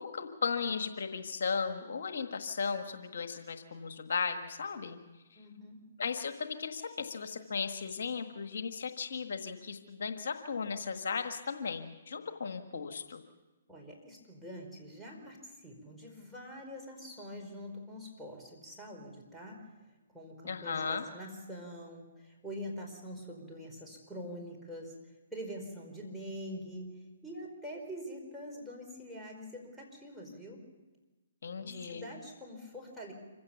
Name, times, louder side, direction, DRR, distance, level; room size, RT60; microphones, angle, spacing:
voice 1, 0.0-5.0 5.3-5.4 6.0-13.2 20.4-21.0 31.4-32.1, left 5 dB, 65° left, 7 dB, 1.5 m, -36 dB
voice 2, 5.4-5.9 13.7-19.7 20.1-24.9 25.3-30.6 31.6-33.1, equal, ahead, -3 dB, 4.7 m, -45 dB
26.0 x 16.0 x 7.2 m, 1.1 s
hypercardioid pair, 135°, 0 cm